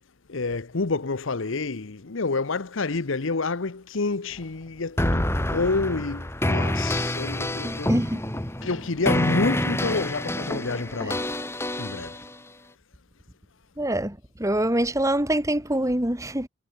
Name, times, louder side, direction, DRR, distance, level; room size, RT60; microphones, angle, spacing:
voice 1, 0.3-8.0 8.6-11.3 11.8-12.2, left 3 dB, 65° left, 0.9 m, -28 dB
sound 1, 5.0-12.3, left 1 dB, 10° left, 2.0 m, -27 dB
voice 2, 7.6-8.2 13.8-16.5, right 1 dB, 15° right, 2.7 m, -25 dB
head